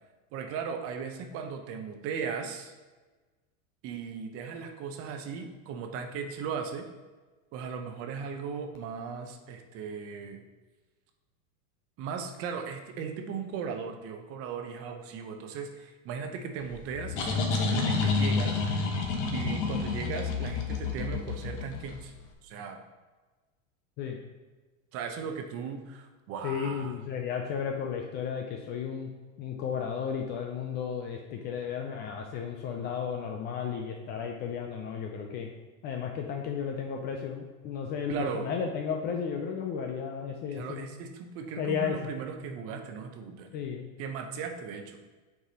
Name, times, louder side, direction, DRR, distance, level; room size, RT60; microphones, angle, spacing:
voice 1, 0.3-2.7 3.8-6.8 7.5-10.4 12.0-18.6 19.3-22.1 22.4-22.8 24.9-27.0 38.1-38.5 40.5-43.5 44.0-45.0, right 6 dB, 35° right, 5 dB, 0.7 m, -37 dB
sound 1, 16.7-22.2, left 4 dB, 55° left, 1.2 m, -29 dB
voice 2, 26.4-29.1 29.4-35.5 35.8-40.9 41.6-42.0 43.5-43.9, left 7 dB, 25° left, 2 dB, 0.4 m, -33 dB
8.1 x 4.7 x 2.8 m, 1.3 s
supercardioid pair, 140°, 41 cm